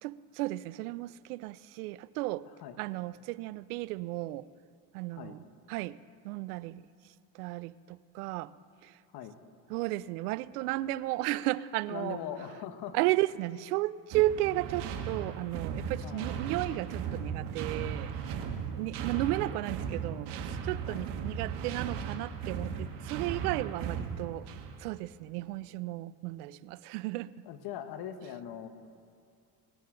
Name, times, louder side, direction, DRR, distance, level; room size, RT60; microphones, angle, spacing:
voice 1, 0.0-2.5 2.8-4.5 4.9-5.4 5.7-6.0 6.2-6.8 7.3-8.5 8.8-9.0 9.7-12.2 12.9-18.3 18.7-24.5 24.8-27.3, right 17 dB, 80° right, 18 dB, 0.5 m, -34 dB
voice 2, 11.9-13.0 16.0-16.4 20.9-21.1 27.4-28.7, left 9 dB, 55° left, 9 dB, 1.3 m, -41 dB
sound 1, 14.1-24.9, right 7 dB, 65° right, 1.4 m, -37 dB
19.0 x 11.5 x 3.8 m, 2.3 s
hypercardioid pair, 80°, 45 cm